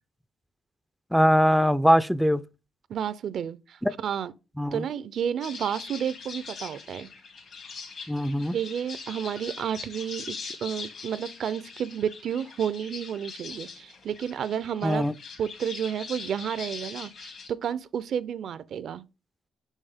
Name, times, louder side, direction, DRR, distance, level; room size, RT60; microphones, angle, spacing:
voice 1, 1.1-2.4 3.8-3.9 4.6-4.8 8.1-8.6 14.8-15.1, equal, ahead, 0.3 m, -22 dB
voice 2, 2.9-4.3 4.7-7.1 8.5-15.1 15.4-19.0, right 8 dB, 65° right, 0.4 m, -31 dB
sound 1, 5.4-17.5, left 5 dB, 65° left, 2.1 m, -42 dB
6.4 x 5.4 x 3.5 m
cardioid pair, 90°, 0 cm